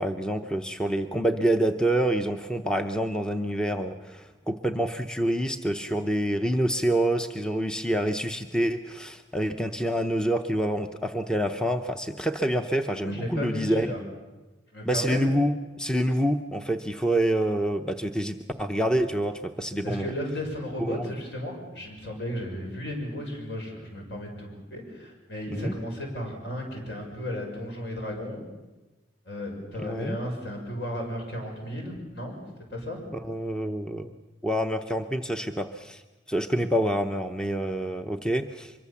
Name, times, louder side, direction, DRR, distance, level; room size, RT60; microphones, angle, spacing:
voice 1, 0.0-13.9 14.8-20.1 20.8-21.1 25.5-25.7 29.8-30.2 33.2-34.1 34.4-36.0 36.3-38.7, right 1 dB, 5° left, 7 dB, 0.7 m, -27 dB
voice 2, 13.0-14.0 14.7-15.2 19.8-28.4 29.3-32.4 32.7-33.0, left 1 dB, 65° left, 1 dB, 6.4 m, -34 dB
24.5 x 22.5 x 7.2 m, 1.1 s
head